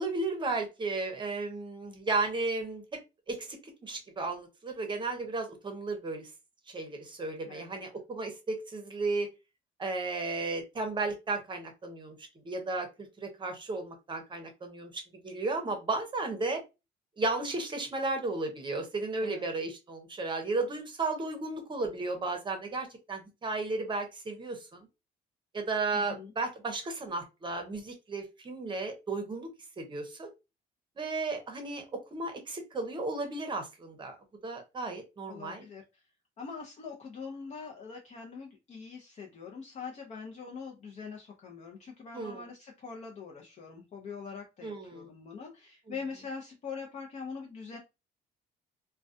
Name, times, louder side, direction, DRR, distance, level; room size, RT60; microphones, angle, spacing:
voice 1, 0.0-2.8 3.3-3.6 3.8-6.3 6.7-9.3 9.8-12.1 12.4-12.9 13.2-16.6 17.2-24.9 25.5-29.5 29.8-30.3 31.0-34.1 34.4-35.6 42.1-42.4 44.6-45.1, right 3 dB, 30° right, 4 dB, 0.7 m, -34 dB
voice 2, 7.5-7.8 19.2-19.4 25.9-26.3 35.3-35.8 36.4-47.8, left 5 dB, 40° left, 0 dB, 0.6 m, -43 dB
2.3 x 2.2 x 2.5 m, 0.25 s
cardioid pair, 110°, 17 cm